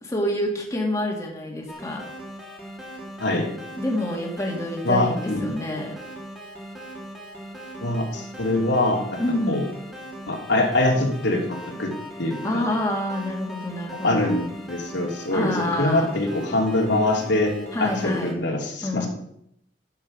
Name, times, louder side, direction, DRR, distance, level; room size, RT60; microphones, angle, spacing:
voice 1, 0.0-2.0 3.8-5.9 9.2-9.7 12.4-14.3 15.3-16.1 17.7-18.3 18.8-19.1, left 1 dB, 15° left, -1 dB, 2.1 m, -27 dB
sound 1, 1.7-18.3, equal, ahead, 2.2 m, -39 dB
voice 2, 4.8-5.5 7.8-9.2 9.5-9.6 10.3-11.9 12.2-12.7 13.9-17.5 17.8-19.1, left 2 dB, 85° left, -1 dB, 2.8 m, -24 dB
11.5 x 8.0 x 5.2 m, 0.74 s
head